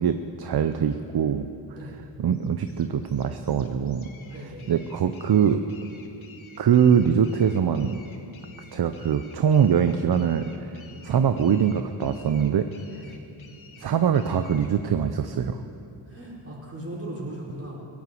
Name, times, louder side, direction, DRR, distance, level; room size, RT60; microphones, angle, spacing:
voice 1, 0.0-1.5 2.2-4.1 4.7-5.6 6.6-8.0 8.7-12.7 13.8-15.6, right 8 dB, 55° right, 9 dB, 0.7 m, -23 dB
sound 1, 2.3-14.7, left 4 dB, 85° left, 1.4 m, -52 dB
voice 2, 4.3-4.7 13.0-13.1 16.1-17.8, right 1 dB, 30° right, -5 dB, 4.3 m, -37 dB
17.0 x 8.6 x 7.8 m, 2.7 s
cardioid pair, 65°, 46 cm